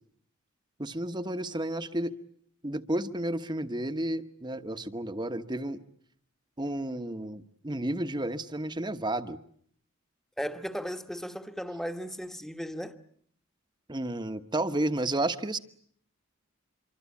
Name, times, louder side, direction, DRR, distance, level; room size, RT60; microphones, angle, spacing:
voice 1, 0.8-2.1 2.6-5.8 6.6-9.4 13.9-15.6, right 1 dB, 20° right, 1.1 m, -32 dB
voice 2, 10.4-13.0, equal, ahead, 1.2 m, -36 dB
26.0 x 24.5 x 8.4 m
head